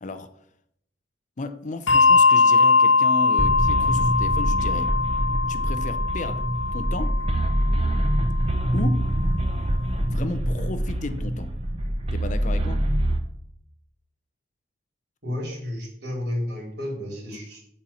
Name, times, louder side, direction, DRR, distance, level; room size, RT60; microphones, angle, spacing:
voice 1, 1.4-4.9 5.5-6.4 6.7-7.2 8.7-9.1 10.1-11.5 12.1-12.8, left 2 dB, 40° left, 11 dB, 0.6 m, -33 dB
Bell, 1.9-8.7, left 4 dB, 85° left, 0.7 m, -21 dB
sound 1, 3.4-13.2, right 1 dB, 30° right, 0.8 m, -25 dB
voice 2, 15.2-17.6, left 1 dB, 60° right, -2 dB, 4.0 m, -31 dB
9.0 x 4.4 x 7.2 m, 0.73 s
head